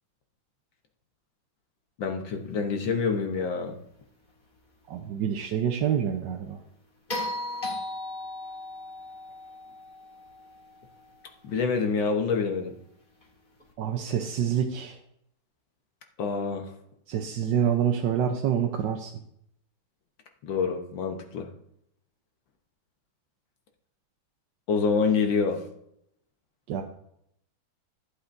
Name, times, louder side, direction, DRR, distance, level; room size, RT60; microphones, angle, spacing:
voice 1, 2.0-3.8 11.4-12.7 16.2-16.7 20.4-21.5 24.7-25.6, left 5 dB, 70° left, 4 dB, 1.7 m, -26 dB
voice 2, 4.9-6.6 13.8-15.0 17.1-19.1 26.7-26.8, right 8 dB, 70° right, 3 dB, 1.3 m, -27 dB
sound 1, 7.1-11.4 13.6-13.7, left 2 dB, 25° left, 2.0 m, -37 dB
14.5 x 8.3 x 2.6 m, 0.75 s
omnidirectional pair, 2.1 m